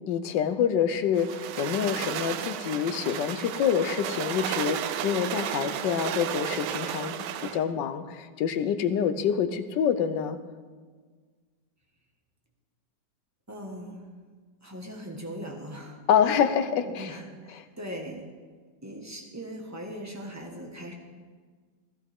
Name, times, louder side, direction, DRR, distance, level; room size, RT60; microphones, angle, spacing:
voice 1, 0.1-7.1 7.4-10.4 16.1-17.2 17.6-17.7, left 8 dB, 70° left, 11 dB, 1.3 m, -26 dB
sound 1, 1.1-7.6, right 10 dB, 70° right, 1.1 m, -33 dB
voice 2, 13.5-14.1 14.6-16.0 16.8-18.2 18.8-20.9, equal, 10° right, 0 dB, 1.3 m, -40 dB
15.5 x 13.5 x 3.6 m, 1.5 s
omnidirectional pair, 2.1 m